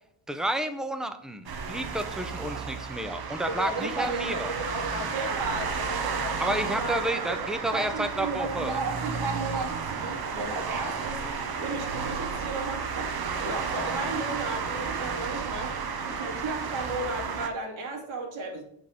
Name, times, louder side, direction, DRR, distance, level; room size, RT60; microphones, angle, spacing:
voice 1, 0.3-4.5 6.4-8.8, right 1 dB, ahead, 9 dB, 0.5 m, -31 dB
sound 1, 1.5-17.5, right 5 dB, 50° right, 1.0 m, -32 dB
voice 2, 3.5-13.1 13.4-15.7 16.0-18.6, right 3 dB, 75° right, 1 dB, 2.3 m, -34 dB
8.2 x 3.6 x 6.3 m, 0.70 s
cardioid pair, 135°, 48 cm